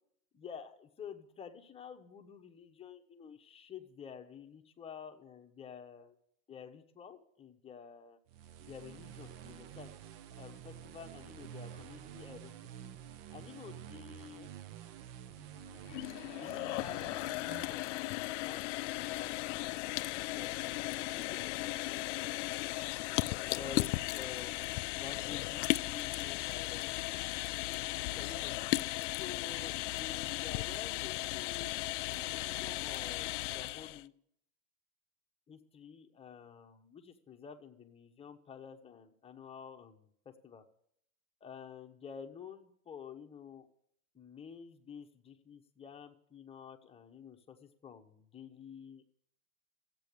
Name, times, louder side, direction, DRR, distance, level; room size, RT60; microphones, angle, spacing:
voice 1, 0.3-6.2 6.5-8.2 8.6-9.9 10.4-12.9 13.3-14.5 15.4-19.8 20.3-22.0 23.5-27.0 28.2-28.6 29.1-34.1 35.5-40.6 41.4-43.7 44.1-49.0, left 7 dB, 15° left, 4 dB, 1.0 m, -50 dB
sound 1, 8.3-17.7, right 10 dB, 45° right, 0.7 m, -49 dB
sound 2, 15.8-34.0, left 19 dB, 60° left, 0.5 m, -36 dB
13.5 x 8.4 x 6.8 m, 0.69 s
supercardioid pair, 140°, 42 cm